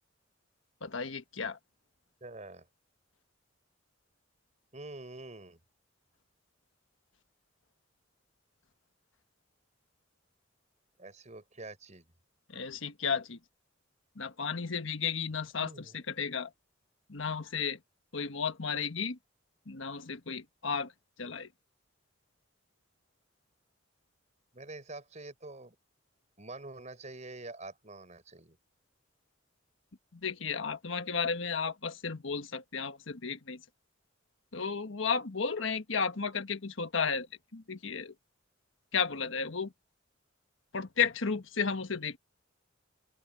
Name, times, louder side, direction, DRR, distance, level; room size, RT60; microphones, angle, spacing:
voice 1, 0.8-1.6 12.5-13.4 14.2-16.5 17.1-17.8 18.1-19.2 19.7-20.9 21.2-21.5 30.2-33.6 34.5-37.3 37.5-38.1 38.9-39.7 40.7-42.2, left 5 dB, 75° left, 1.4 m, -33 dB
voice 2, 2.2-2.7 4.7-5.6 11.0-12.1 15.6-16.0 24.5-25.8 26.4-28.6, right 2 dB, 35° right, 5.4 m, -46 dB
open air
head